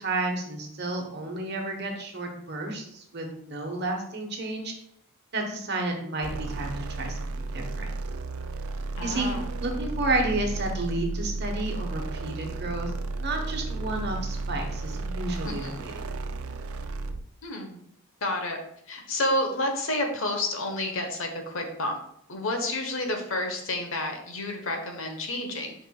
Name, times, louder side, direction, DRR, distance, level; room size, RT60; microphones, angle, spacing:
voice 1, 0.0-4.7 5.3-7.9 9.0-9.3 9.6-16.2, right 2 dB, 50° right, 2 dB, 1.2 m, -31 dB
sound 1, 6.2-17.3, right 3 dB, 80° right, 0.5 m, -33 dB
voice 2, 9.0-9.5 15.4-15.8 17.4-17.8 18.2-18.6 18.9-22.0 22.3-25.7, left 1 dB, 65° left, 3 dB, 1.1 m, -30 dB
9.0 x 5.3 x 2.3 m, 0.71 s
head